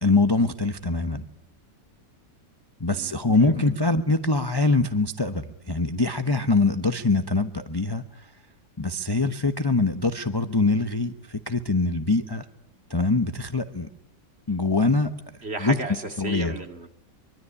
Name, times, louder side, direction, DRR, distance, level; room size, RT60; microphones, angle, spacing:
voice 1, 0.0-1.2 2.8-8.3 8.8-12.4 12.9-13.9 14.5-15.1 15.6-15.8 16.2-16.6, left 3 dB, 20° left, 9 dB, 0.9 m, -23 dB
voice 2, 15.4-16.9, right 3 dB, 35° right, 6 dB, 2.7 m, -33 dB
24.0 x 24.0 x 9.9 m, 0.75 s
omnidirectional pair, 1.9 m